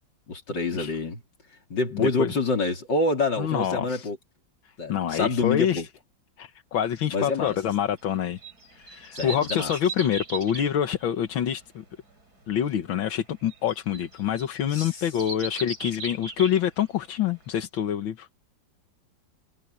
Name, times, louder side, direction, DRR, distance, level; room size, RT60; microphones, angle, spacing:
voice 1, 0.3-1.2 1.7-4.2 4.8-5.9 7.1-7.6 9.1-9.7 14.7-15.0, left 3 dB, 65° left, 4.2 m, -27 dB
voice 2, 1.9-2.3 3.4-4.1 4.9-5.8 6.4-8.4 8.7-11.8 12.5-18.3, left 9 dB, 85° left, 2.0 m, -26 dB
sound 1, 7.2-17.2 17.6-17.7, right 2 dB, 55° right, 6.4 m, -39 dB
omnidirectional pair, 2.1 m